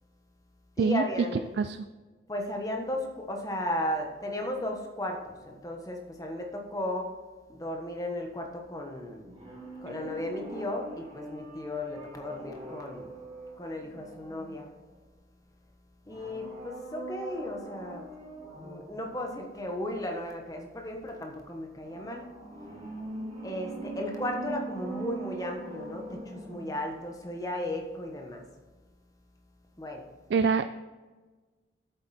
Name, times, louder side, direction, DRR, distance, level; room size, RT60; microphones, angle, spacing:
voice 1, 0.8-1.5 2.3-7.1 7.5-9.2 9.8-13.1 13.6-14.7 16.1-18.1 18.5-22.2 23.4-28.4 29.8-30.0, left 1 dB, 20° left, 2 dB, 1.2 m, -35 dB
sound 1, 9.2-15.0 16.0-19.0 21.8-27.0 27.3-27.4, right 2 dB, 30° right, 2.9 m, -42 dB
voice 2, 30.3-30.7, right 5 dB, 65° right, 10 dB, 0.3 m, -25 dB
8.7 x 7.6 x 4.3 m, 1.3 s
head